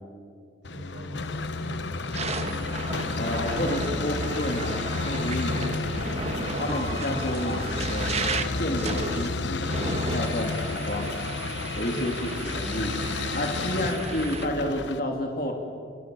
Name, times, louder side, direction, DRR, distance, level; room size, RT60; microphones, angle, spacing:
sound 1, 0.6-15.0, left 3 dB, 70° left, 0.9 m, -31 dB
voice 1, 0.7-2.6 5.4-6.1 11.9-12.1, equal, 75° right, 0 dB, 7.6 m, -40 dB
sound 2, 1.3-1.5 2.0-14.5, right 4 dB, 35° right, 1.4 m, -35 dB
voice 2, 3.2-5.6 6.4-8.1 8.6-11.1 11.7-13.0 13.3-15.5, left 1 dB, 50° left, 2 dB, 3.1 m, -30 dB
sound 3, 6.7-10.9, left 2 dB, 35° left, 0.7 m, -38 dB
28.5 x 26.0 x 7.9 m, 2.2 s
head